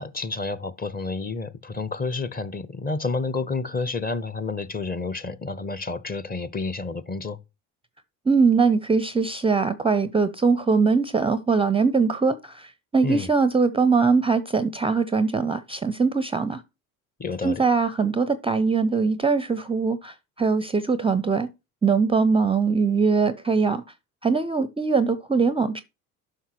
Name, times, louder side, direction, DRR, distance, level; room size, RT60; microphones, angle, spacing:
voice 1, 0.0-7.4 13.0-13.3 17.2-17.6, left 3 dB, 20° left, 0.8 m, -30 dB
voice 2, 8.3-16.6 17.4-21.5 21.8-23.8 24.2-25.8, right 4 dB, 15° right, 0.5 m, -22 dB
11.0 x 5.8 x 2.9 m
figure-of-eight pair, 55°, 44 cm